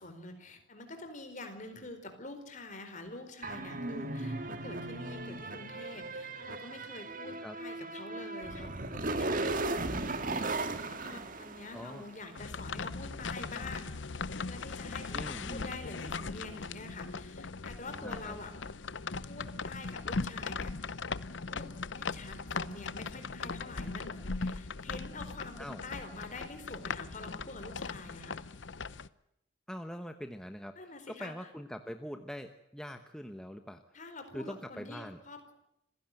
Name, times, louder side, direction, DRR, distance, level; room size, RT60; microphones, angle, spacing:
voice 1, 0.0-13.9 14.5-18.5 19.3-20.7 21.5-28.4 30.8-31.5 33.9-35.5, left 2 dB, 40° left, 7 dB, 4.4 m, -46 dB
sound 1, 3.4-12.1, right 2 dB, 45° right, 1.7 m, -37 dB
voice 2, 11.7-12.0 15.1-15.7 18.0-18.4 25.6-25.8 29.7-33.8 34.3-35.2, equal, 5° left, 7 dB, 1.0 m, -43 dB
sound 2, 12.4-29.1, left 4 dB, 65° left, 0.8 m, -39 dB
27.0 x 16.5 x 7.8 m, 0.82 s
head